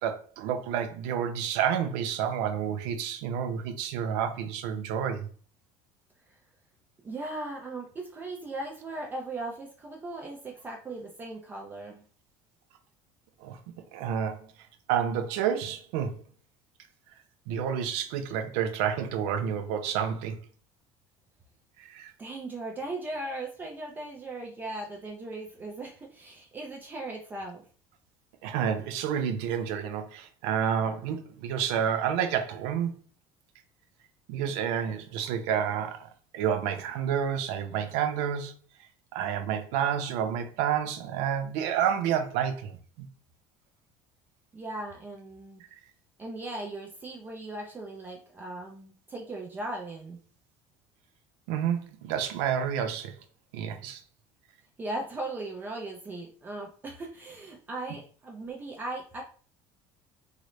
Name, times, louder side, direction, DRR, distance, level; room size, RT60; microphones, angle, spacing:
voice 1, 0.0-5.3 13.4-13.6 13.9-14.5 14.9-16.2 17.5-20.4 21.8-22.1 28.4-32.9 34.3-38.5 39.1-43.1 51.5-53.1 53.5-54.0, right 8 dB, 85° right, 0.5 m, -29 dB
voice 2, 7.0-12.0 22.2-27.6 44.5-45.6 46.2-50.2 54.8-59.2, right 2 dB, 15° right, 0.4 m, -38 dB
3.7 x 2.0 x 3.1 m
cardioid pair, 160°, 11 cm